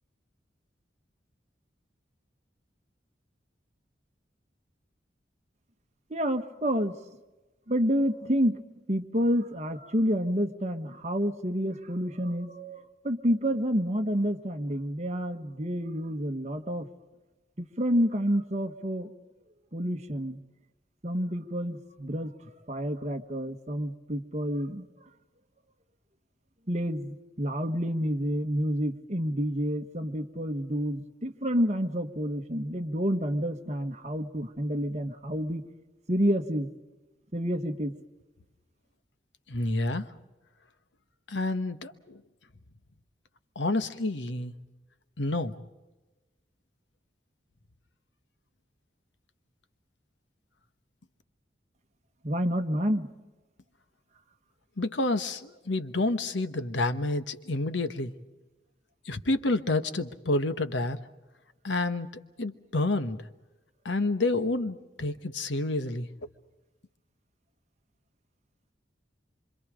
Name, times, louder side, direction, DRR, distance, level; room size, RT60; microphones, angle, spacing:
voice 1, 6.1-7.0 7.7-8.6 8.9-16.9 17.6-19.1 19.7-20.4 21.0-22.3 22.7-24.9 26.7-35.6 36.1-36.7 37.3-37.9 52.2-53.1, equal, 35° right, 1.4 m, -29 dB
voice 2, 39.5-40.1 41.3-42.2 43.5-44.5 45.2-45.5 54.8-58.1 59.0-61.0 61.6-63.2 63.8-66.1, left 2 dB, 80° left, 1.2 m, -29 dB
26.5 x 25.5 x 5.0 m
head